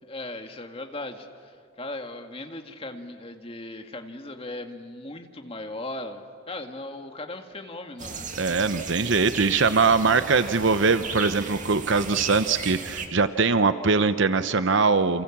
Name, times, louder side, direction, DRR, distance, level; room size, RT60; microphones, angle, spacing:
voice 1, 0.0-1.5 1.8-8.3 9.7-9.9, left 2 dB, 25° left, 5 dB, 1.9 m, -38 dB
sound 1, 8.0-13.1, right 4 dB, 35° right, 2.2 m, -35 dB
voice 2, 8.4-15.2, right 4 dB, 60° right, 11 dB, 0.8 m, -22 dB
28.5 x 28.5 x 7.3 m, 2.4 s
head